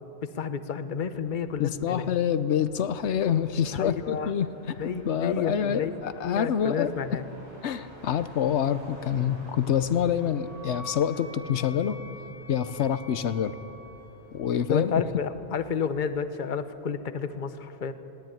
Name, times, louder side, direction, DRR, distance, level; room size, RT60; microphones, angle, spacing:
voice 1, 0.2-2.1 3.7-4.3 4.8-5.9 6.2-7.2 14.7-17.9, left 6 dB, 50° left, 10 dB, 1.0 m, -30 dB
Motor vehicle (road), 1.0-16.0, equal, 90° right, 6.5 m, -52 dB
voice 2, 1.6-6.9 7.6-12.0 12.5-13.6 14.3-14.9, left 8 dB, 85° left, 12 dB, 1.0 m, -27 dB
Wind instrument woodwind instrument, 9.7-14.5, left 2 dB, 55° right, 4.3 m, -47 dB
21.0 x 17.5 x 9.2 m, 3.0 s
omnidirectional pair, 1.1 m